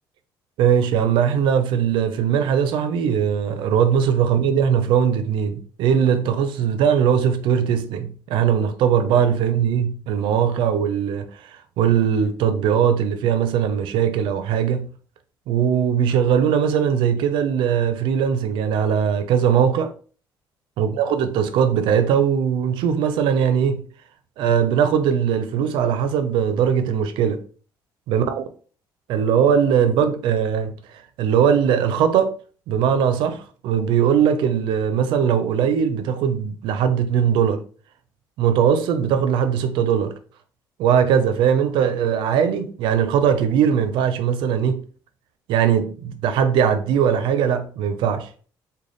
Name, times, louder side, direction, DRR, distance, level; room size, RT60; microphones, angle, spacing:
voice 1, 0.6-11.3 11.8-14.9 15.5-19.9 20.8-23.9 24.4-27.4 28.1-28.4 29.1-30.7 31.2-32.4 32.7-37.6 38.4-40.2 40.8-44.8 45.5-48.3, right 8 dB, 80° right, 0.5 m, -20 dB
3.8 x 2.2 x 3.3 m
cardioid pair, 165°, 8 cm